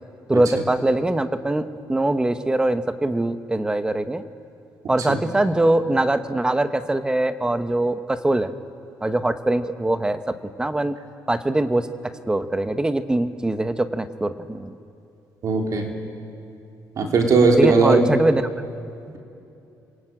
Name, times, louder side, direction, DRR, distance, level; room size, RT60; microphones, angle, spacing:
voice 1, 0.3-4.2 4.9-8.5 9.0-11.0 11.3-14.8 17.6-18.4, right 1 dB, 10° right, 10 dB, 0.9 m, -22 dB
voice 2, 15.4-15.9 17.0-18.0, right 4 dB, 50° right, 2 dB, 3.4 m, -18 dB
27.5 x 23.0 x 9.0 m, 2.7 s
cardioid pair, 150°, 7 cm